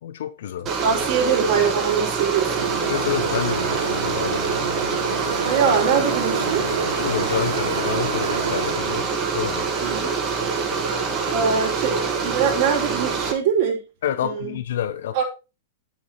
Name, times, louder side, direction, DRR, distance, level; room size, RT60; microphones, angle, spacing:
voice 1, 0.0-0.7 2.9-4.6 6.9-9.7 14.0-15.2, left 10 dB, 65° left, 1.2 m, -28 dB
sound 1, 0.7-13.3, right 5 dB, 30° right, 2.8 m, -25 dB
voice 2, 0.8-2.7 5.5-6.7 9.8-10.1 11.3-13.8 14.2-14.5 15.1-15.2, right 6 dB, 55° right, 4.2 m, -23 dB
sound 2, 2.6-8.7, right 3 dB, 85° right, 2.7 m, -29 dB
9.0 x 7.3 x 4.5 m
hypercardioid pair, 105°, 0 cm